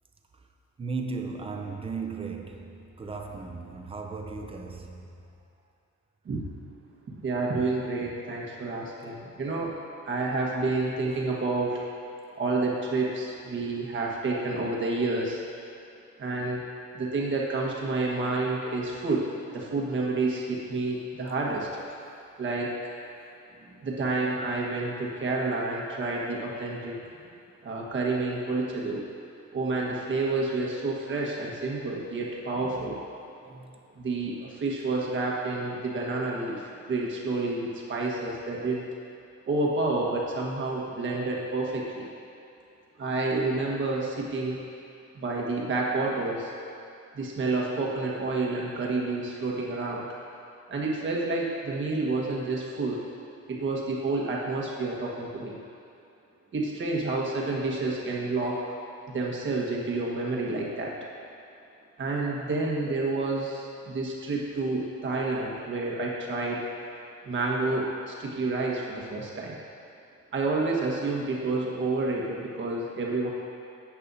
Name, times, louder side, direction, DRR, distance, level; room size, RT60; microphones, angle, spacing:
voice 1, 0.8-5.1 23.5-23.8 32.6-32.9 33.4-33.7, right 4 dB, 20° right, 0.6 m, -37 dB
voice 2, 7.2-9.7 10.0-11.9 12.3-15.4 16.2-16.6 16.9-21.7 22.4-22.7 23.8-27.0 27.6-29.0 29.5-33.0 33.9-38.8 39.5-42.1 43.0-44.6 45.1-46.5 47.1-50.0 50.7-53.0 53.5-55.6 56.5-58.6 59.1-61.0 62.0-66.6 67.2-69.6 70.3-73.3, right 3 dB, 40° right, 1.5 m, -29 dB
14.0 x 8.7 x 2.7 m
cardioid pair, 175°, 30 cm